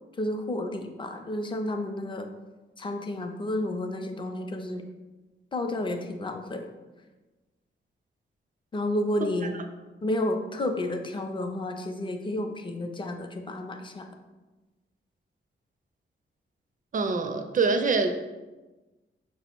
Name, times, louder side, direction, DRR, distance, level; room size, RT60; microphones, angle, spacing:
voice 1, 0.2-2.3 2.8-4.8 5.5-6.7 8.7-9.6 10.0-14.2, left 1 dB, 25° left, 5 dB, 0.4 m, -31 dB
voice 2, 16.9-18.1, right 4 dB, 40° right, 6 dB, 0.4 m, -24 dB
5.5 x 2.0 x 4.4 m, 1.2 s
wide cardioid pair, 150°, 21 cm